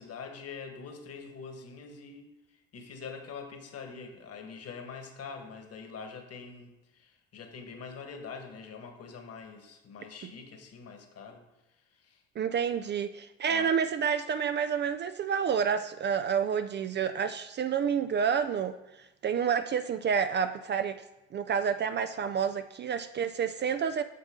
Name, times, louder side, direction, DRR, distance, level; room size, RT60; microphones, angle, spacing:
voice 1, 0.0-11.4 11.7-12.2 13.5-13.8, left 5 dB, 45° left, 5 dB, 1.6 m, -44 dB
voice 2, 12.4-18.7 19.2-21.0 21.3-24.0, right 7 dB, 35° right, 10 dB, 0.4 m, -29 dB
8.4 x 6.2 x 3.7 m, 0.96 s
hypercardioid pair, 60°, 34 cm